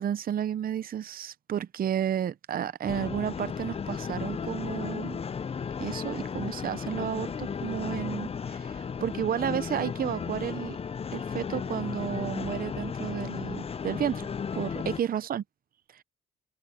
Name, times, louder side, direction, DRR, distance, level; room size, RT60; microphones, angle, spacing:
voice 1, 0.0-5.2 5.8-10.8 11.1-15.4 15.9-16.0, right 9 dB, 45° right, 0.7 m, -32 dB
sound 1, 2.8-15.0, left 6 dB, 30° left, 0.5 m, -34 dB
open air
cardioid pair, 90°, 20 cm